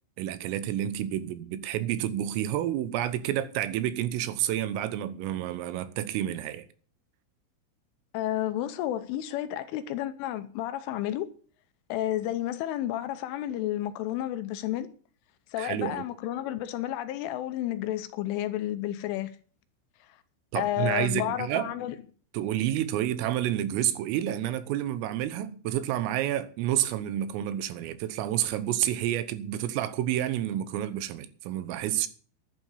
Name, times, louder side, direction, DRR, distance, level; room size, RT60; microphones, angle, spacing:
voice 1, 0.2-6.7 15.6-16.0 20.5-21.7 22.3-32.1, right 12 dB, 80° right, 3.6 m, -29 dB
voice 2, 8.1-11.3 11.9-14.9 15.5-19.3 20.6-22.0, left 13 dB, 80° left, 3.2 m, -31 dB
11.5 x 9.6 x 8.4 m
omnidirectional pair, 6.0 m